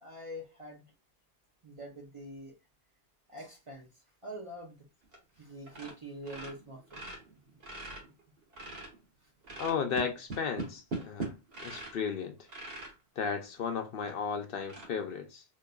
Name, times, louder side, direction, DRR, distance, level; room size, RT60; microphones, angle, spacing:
voice 1, 0.0-0.8 1.6-2.6 3.3-3.9 4.2-4.8 5.4-7.0 8.0-8.1, right 1 dB, 35° right, 0.7 m, -45 dB
sound 1, 5.0-5.4 5.7-6.0 6.2-9.0 9.4-12.1 12.5-12.9 13.6-13.7 14.1-14.2 14.6-14.9, right 3 dB, 65° right, 1.5 m, -41 dB
voice 2, 9.6-11.3 11.6-12.4 13.2-15.4, left 6 dB, 65° left, 0.7 m, -34 dB
3.9 x 2.6 x 2.2 m
omnidirectional pair, 1.1 m